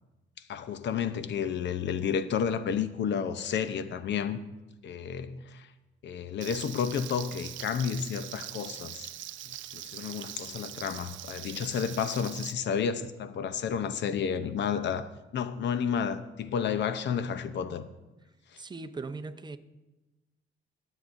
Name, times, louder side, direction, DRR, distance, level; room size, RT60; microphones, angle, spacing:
voice 1, 0.5-4.4 4.8-5.7 6.0-9.1 9.7-17.9, left 7 dB, 65° left, 0.7 m, -31 dB
Frying (food), 6.4-12.5, right 13 dB, 70° right, 0.5 m, -42 dB
voice 2, 18.6-19.6, right 3 dB, 20° right, 0.6 m, -39 dB
21.5 x 7.5 x 2.6 m
cardioid pair, 90°, 20 cm